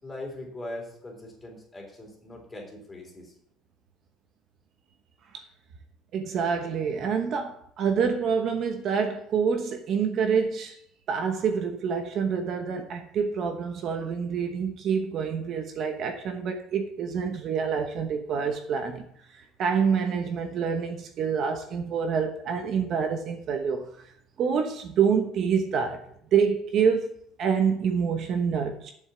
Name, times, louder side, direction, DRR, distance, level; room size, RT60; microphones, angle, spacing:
voice 1, 0.0-3.3, left 1 dB, 15° left, 3.5 m, -40 dB
voice 2, 6.1-10.8 11.1-19.0 19.6-23.9 24.4-26.0 26.3-28.9, right 6 dB, 45° right, 1.0 m, -27 dB
7.6 x 7.1 x 7.1 m
cardioid pair, 150°, 0 cm